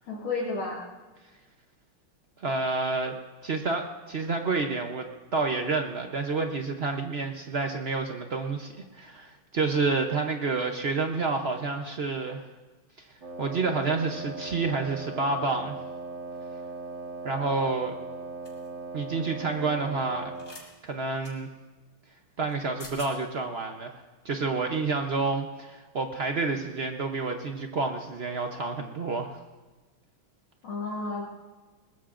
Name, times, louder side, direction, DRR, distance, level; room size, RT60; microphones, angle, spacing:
voice 1, 0.1-0.8 30.6-31.3, left 3 dB, 75° left, -7 dB, 2.9 m, -31 dB
voice 2, 2.4-3.1 3.4-12.4 13.4-15.8 17.2-17.9 18.9-20.3 20.8-21.5 22.4-23.9 24.2-29.4, right 3 dB, 75° right, 4 dB, 0.5 m, -29 dB
Wind instrument woodwind instrument, 13.2-20.6, right 3 dB, 35° right, 1.8 m, -39 dB
sound 1, 18.4-18.7 20.3-20.7 21.2-21.3 22.5-22.6 22.8-23.1, left 2 dB, 40° left, 3.0 m, -45 dB
21.5 x 20.0 x 2.5 m, 1.2 s
omnidirectional pair, 2.3 m